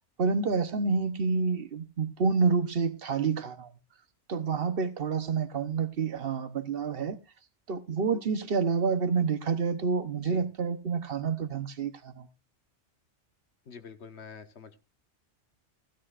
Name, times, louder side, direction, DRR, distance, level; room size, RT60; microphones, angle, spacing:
voice 1, 0.2-3.7 4.3-7.2 7.7-12.3, right 5 dB, 55° right, 1.1 m, -28 dB
voice 2, 13.7-14.8, left 6 dB, 65° left, 1.3 m, -46 dB
15.5 x 13.0 x 2.5 m
omnidirectional pair, 1.2 m